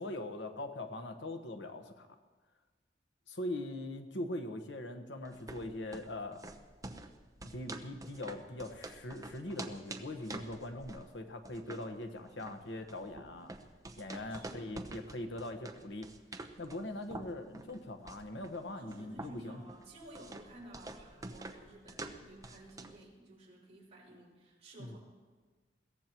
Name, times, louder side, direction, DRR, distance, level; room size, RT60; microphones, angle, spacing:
voice 1, 0.0-2.1 3.3-6.4 7.5-13.5 14.0-16.1 16.6-19.6 24.8-25.0, left 1 dB, 90° left, 6 dB, 1.2 m, -41 dB
sound 1, 5.3-23.1, right 2 dB, 20° right, 0.9 m, -48 dB
voice 2, 14.3-14.9 18.7-25.0, right 1 dB, 40° right, -5 dB, 5.8 m, -53 dB
22.0 x 17.0 x 3.0 m, 1.4 s
head